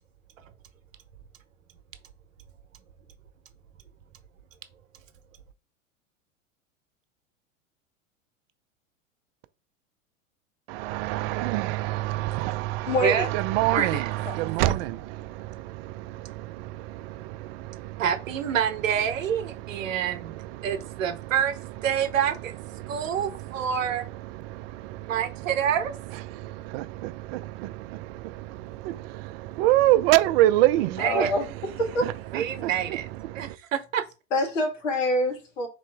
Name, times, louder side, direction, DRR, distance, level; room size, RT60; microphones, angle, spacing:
voice 1, 10.7-18.1 19.5-21.3 21.9-22.0 22.7-25.7 26.3-31.3 32.0-33.6, right 16 dB, 50° right, 0.5 m, -28 dB
voice 2, 12.8-13.3 13.8-14.0 31.0-31.5 31.8-32.1 34.3-35.7, left 1 dB, 75° left, 1.6 m, -26 dB
voice 3, 13.6-14.0 18.0-20.4 20.6-22.5 22.9-24.0 25.1-26.0 30.8-31.3 32.3-33.0 33.3-34.0, right 8 dB, 80° right, 0.8 m, -27 dB
4.1 x 3.0 x 3.3 m
hypercardioid pair, 90°, 39 cm